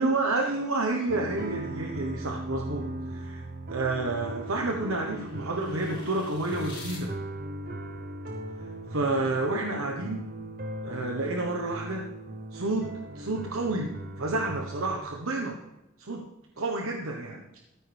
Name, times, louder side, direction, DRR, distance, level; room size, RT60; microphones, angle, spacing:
voice 1, 0.0-3.4 3.7-7.1 8.9-10.2 10.8-12.1 12.5-15.6 16.0-16.3 16.6-17.4, right 2 dB, 85° right, 1 dB, 1.2 m, -30 dB
sound 1, 1.1-15.0, right 1 dB, 45° right, 0.9 m, -38 dB
sound 2, 3.5-7.0, left 2 dB, 25° left, 4.5 m, -48 dB
14.0 x 13.5 x 3.5 m, 0.97 s
head